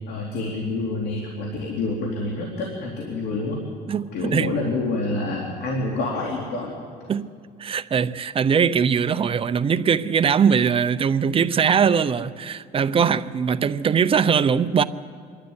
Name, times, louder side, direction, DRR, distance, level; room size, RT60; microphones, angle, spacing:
voice 1, 0.1-3.6 4.1-6.7, left 2 dB, 75° left, 3.2 m, -27 dB
voice 2, 3.9-4.5 7.1-7.3 7.6-14.8, right 7 dB, 35° right, 0.7 m, -21 dB
26.0 x 12.0 x 9.6 m
cardioid pair, 110°, 17 cm